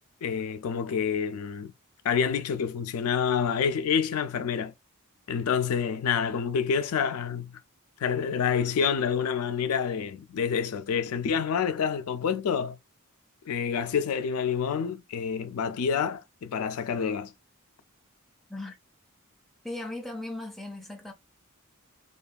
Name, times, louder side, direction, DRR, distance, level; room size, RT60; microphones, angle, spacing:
voice 1, 0.2-1.7 2.0-4.7 5.3-7.5 8.0-12.8 13.5-17.3, left 7 dB, 85° left, 0.4 m, -28 dB
voice 2, 19.6-21.1, left 2 dB, ahead, 0.5 m, -37 dB
2.6 x 2.3 x 2.3 m
head